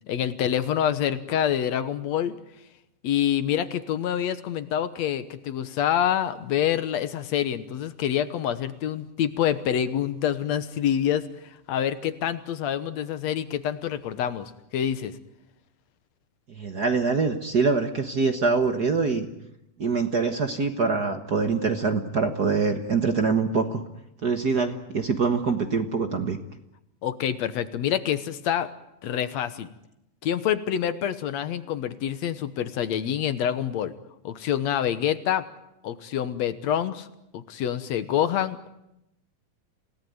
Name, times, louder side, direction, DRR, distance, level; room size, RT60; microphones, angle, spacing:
voice 1, 0.1-2.3 3.0-11.3 11.7-15.2 27.0-28.7 29.0-29.7 30.2-33.9 34.2-35.5 35.8-37.1 37.3-38.7, left 10 dB, 65° left, 13 dB, 2.1 m, -26 dB
voice 2, 16.5-19.3 19.8-23.8 24.2-26.4, right 4 dB, 50° right, 7 dB, 1.1 m, -24 dB
28.0 x 18.0 x 9.4 m, 0.85 s
omnidirectional pair, 3.7 m